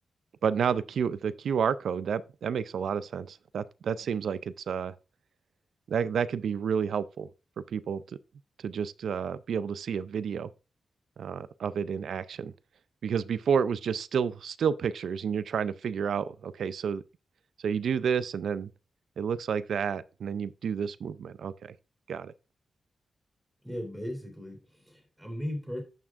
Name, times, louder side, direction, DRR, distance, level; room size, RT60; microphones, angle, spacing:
voice 1, 0.4-5.0 5.9-7.3 7.7-8.0 8.6-10.5 11.2-12.5 13.0-17.0 17.6-18.7 19.2-21.8 22.1-22.3, right 7 dB, 85° right, 0.4 m, -30 dB
voice 2, 23.6-25.8, equal, 5° right, 3.2 m, -37 dB
11.0 x 6.0 x 2.4 m
wide cardioid pair, 95°, 0 cm